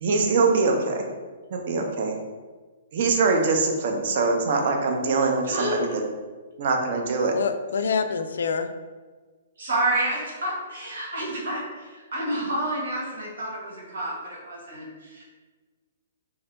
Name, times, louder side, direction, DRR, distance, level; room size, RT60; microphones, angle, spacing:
voice 1, 0.0-1.0 1.5-2.2 2.9-5.9 6.6-7.3, right 3 dB, 45° right, 3 dB, 0.5 m, -23 dB
voice 2, 5.4-6.0 9.6-15.2, right 1 dB, 75° right, -3 dB, 1.4 m, -29 dB
voice 3, 7.3-8.7, left 5 dB, 80° left, 9 dB, 0.3 m, -26 dB
3.7 x 2.8 x 3.3 m, 1.4 s
hypercardioid pair, 170°, 0 cm